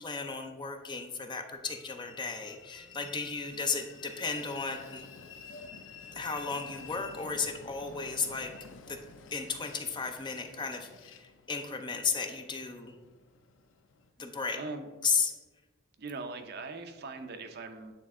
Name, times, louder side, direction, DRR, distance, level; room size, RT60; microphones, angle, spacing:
voice 1, 0.0-5.1 6.1-8.5 8.9-9.0 9.3-12.9 14.2-14.6 15.0-15.3, left 5 dB, 25° left, 5 dB, 0.5 m, -34 dB
Train, 1.6-14.1, left 5 dB, 70° left, 0.5 m, -51 dB
voice 2, 14.5-14.9 16.0-17.9, right 3 dB, 55° right, 5 dB, 0.6 m, -40 dB
8.4 x 3.4 x 3.6 m, 1.3 s
head